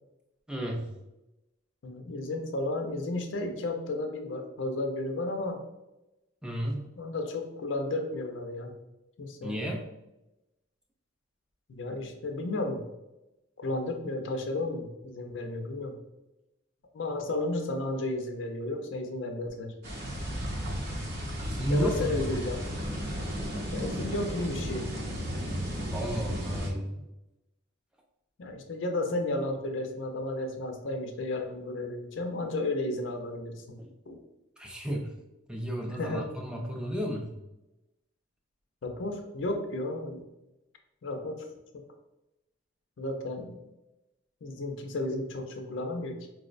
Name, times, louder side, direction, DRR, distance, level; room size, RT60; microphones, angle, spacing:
voice 1, 0.5-0.9 6.4-6.9 9.4-9.8 21.4-22.2 25.9-27.0 33.8-33.9 34.6-35.1 35.5-37.3, equal, 5° right, 0 dB, 0.4 m, -32 dB
voice 2, 1.8-5.6 7.0-8.7 9.2-9.6 11.7-12.8 13.6-16.0 16.9-19.7 21.7-22.7 23.7-24.9 28.4-33.8 34.1-34.2 36.0-36.3 38.8-40.2 41.0-41.5 41.7-41.8 43.0-43.6 44.4-46.2, left 2 dB, 70° left, 4 dB, 0.4 m, -33 dB
sound 1, 19.8-26.7, equal, 55° right, 0.6 m, -34 dB
4.6 x 2.0 x 2.4 m, 0.96 s
head